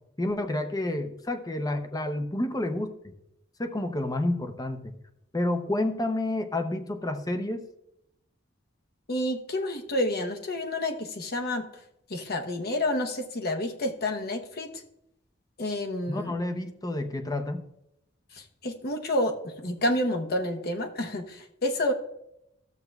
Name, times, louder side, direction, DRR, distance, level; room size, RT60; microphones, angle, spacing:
voice 1, 0.2-3.1 3.6-4.9 5.3-7.6 16.1-17.6, left 1 dB, 20° left, 7 dB, 0.7 m, -29 dB
voice 2, 9.1-11.7 12.1-14.7 15.6-16.3 18.3-21.9, left 1 dB, 55° left, 4 dB, 1.0 m, -29 dB
13.0 x 7.7 x 2.3 m, 0.81 s
head